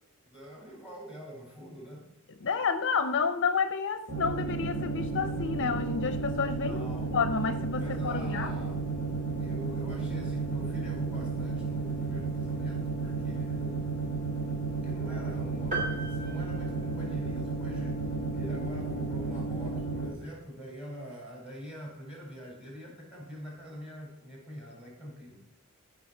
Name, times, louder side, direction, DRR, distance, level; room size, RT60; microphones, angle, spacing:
voice 1, 0.2-2.1 6.6-7.2 7.8-8.9 9.4-13.9 14.8-25.4, equal, 5° right, -2 dB, 4.8 m, -44 dB
voice 2, 2.4-8.5, left 5 dB, 55° left, 10 dB, 0.7 m, -30 dB
sound 1, 4.1-20.1, right 3 dB, 55° right, 3.1 m, -33 dB
sound 2, 15.7-17.5, right 2 dB, 35° right, 2.2 m, -37 dB
15.5 x 5.9 x 4.4 m, 0.85 s
head